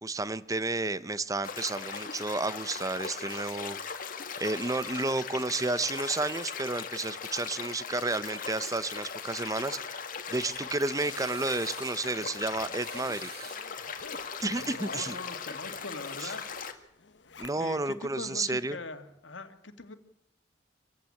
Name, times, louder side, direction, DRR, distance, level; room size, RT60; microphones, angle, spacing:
voice 1, 0.0-3.8 4.4-13.5 14.4-15.2 16.2-16.3 17.4-18.8, right 2 dB, 20° right, 15 dB, 0.8 m, -31 dB
sound 1, 1.4-16.7, left 6 dB, 45° left, 2.0 m, -39 dB
Zipper (clothing), 10.5-18.0 18.4-18.5, left 4 dB, 65° left, 1.0 m, -51 dB
sound 2, 10.9-12.1 12.7-14.0, right 8 dB, 55° right, 2.7 m, -49 dB
voice 2, 14.2-16.5 17.6-19.9, left 3 dB, 85° left, 8 dB, 2.1 m, -42 dB
26.0 x 15.5 x 8.6 m, 0.79 s
head